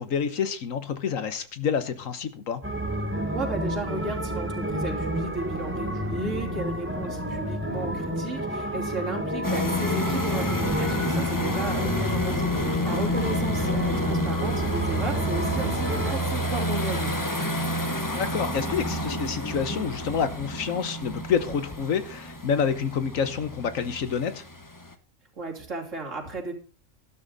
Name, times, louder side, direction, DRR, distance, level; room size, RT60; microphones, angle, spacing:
voice 1, 0.0-2.6 11.8-11.9 18.0-24.4, left 7 dB, 85° left, 12 dB, 1.5 m, -28 dB
sound 1, 2.6-16.1, equal, 10° right, 1.5 m, -30 dB
voice 2, 3.3-17.1 25.4-26.5, right 3 dB, 70° right, 0 dB, 3.4 m, -34 dB
sound 2, 9.4-24.9, equal, 15° left, 1.1 m, -29 dB
13.0 x 12.0 x 4.1 m, 0.35 s
omnidirectional pair, 1.3 m